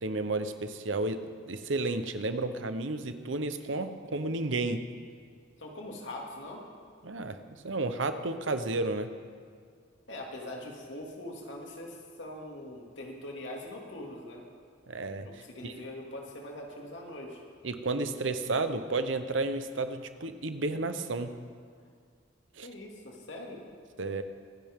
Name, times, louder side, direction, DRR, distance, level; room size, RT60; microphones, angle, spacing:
voice 1, 0.0-1.2 1.5-4.8 7.0-9.1 14.9-15.7 17.6-21.3 22.6-22.7 24.0-24.2, right 2 dB, 80° right, 9 dB, 0.9 m, -32 dB
voice 2, 5.6-6.6 10.1-14.4 15.2-17.4 22.6-23.6, left 1 dB, 75° left, -1 dB, 2.5 m, -42 dB
25.5 x 10.5 x 3.7 m, 2.1 s
head